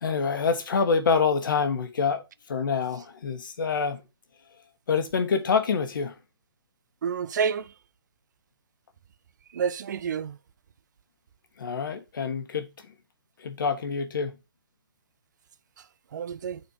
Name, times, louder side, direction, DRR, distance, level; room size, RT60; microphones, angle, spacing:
voice 1, 0.0-2.2 2.5-4.0 4.9-6.1 11.6-12.7 13.4-14.4, left 5 dB, 60° left, 1.3 m, -26 dB
voice 2, 7.0-7.7 9.5-10.4 16.1-16.6, right 6 dB, 50° right, 0.4 m, -29 dB
10.0 x 4.3 x 2.7 m
hypercardioid pair, 140°, 12 cm